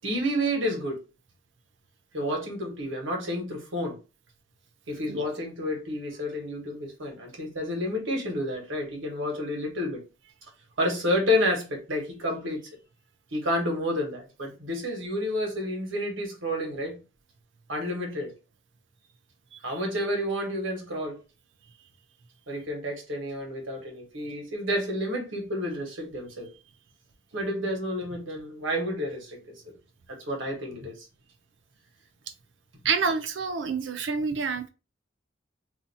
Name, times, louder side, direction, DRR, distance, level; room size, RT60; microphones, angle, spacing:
voice 1, 0.0-1.0 2.1-4.0 4.9-10.0 10.8-12.6 13.3-17.0 17.7-18.3 19.6-21.2 22.5-26.5 27.3-29.4 29.6-29.7 30.1-30.9, equal, 90° right, 1.3 m, -30 dB
voice 2, 32.8-34.7, right 5 dB, 65° right, 0.5 m, -28 dB
2.8 x 2.3 x 4.1 m
head